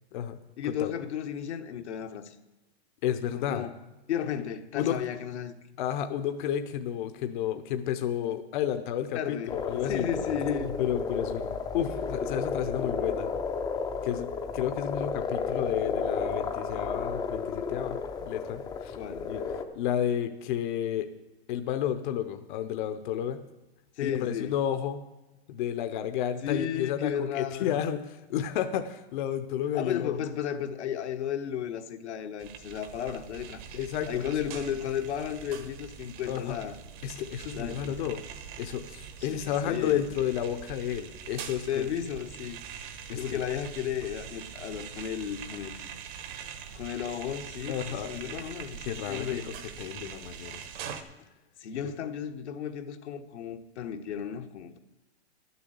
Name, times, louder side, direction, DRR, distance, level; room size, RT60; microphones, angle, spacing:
voice 1, 0.6-2.3 3.3-3.8 4.1-5.5 9.1-10.8 18.9-19.3 24.0-24.6 26.4-27.8 29.7-33.6 34.1-36.8 37.5-38.2 39.2-40.1 41.7-42.6 43.1-45.9 46.7-49.5 51.6-54.8, left 9 dB, 80° left, 1.2 m, -34 dB
voice 2, 3.0-3.6 4.8-5.0 5.8-10.1 10.8-11.5 11.7-13.3 14.0-14.3 14.5-19.0 19.3-19.4 19.7-21.1 21.5-23.4 24.0-25.0 25.5-30.2 33.7-34.2 36.3-36.6 37.0-38.2 38.6-41.9 43.1-43.2 47.7-48.4 48.9-49.5 49.8-50.7, left 10 dB, 45° left, 0.8 m, -31 dB
sound 1, 9.5-19.6, left 5 dB, 10° left, 0.5 m, -32 dB
sound 2, 32.4-51.0, right 7 dB, 50° right, 1.2 m, -43 dB
11.5 x 7.0 x 7.9 m
hypercardioid pair, 155°, 33 cm